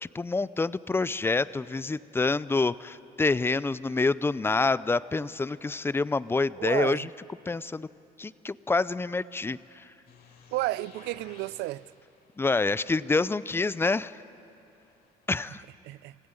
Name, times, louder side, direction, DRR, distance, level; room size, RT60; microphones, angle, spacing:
voice 1, 0.0-7.1 7.5-7.9 8.2-9.9 12.4-14.2 15.3-15.6, left 3 dB, 15° left, 0.4 m, -27 dB
voice 2, 6.6-7.1 10.5-11.9 15.8-16.2, right 17 dB, 85° right, 0.4 m, -32 dB
sound 1, 10.1-15.6, left 5 dB, 70° left, 3.9 m, -58 dB
26.5 x 16.5 x 9.0 m
cardioid pair, 110°, 17 cm